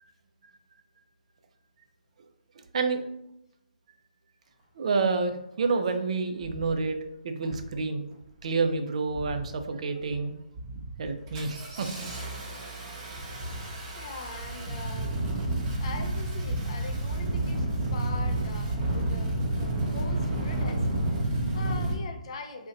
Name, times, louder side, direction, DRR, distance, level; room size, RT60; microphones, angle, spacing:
voice 1, 4.8-7.0 7.2-8.0 8.4-10.3 11.0-11.9, right 4 dB, 50° right, 6 dB, 0.4 m, -28 dB
Engine starting, 5.6-5.7 6.4-6.7 7.4-7.8 8.1-8.6 9.1-9.6 10.0-10.2 10.5-21.9, right 1 dB, 25° right, 0.7 m, -31 dB
voice 2, 13.5-15.2 15.8-22.7, left 3 dB, 45° left, 5 dB, 0.4 m, -42 dB
2.6 x 2.1 x 3.7 m, 0.81 s
figure-of-eight pair, 140°, 4 cm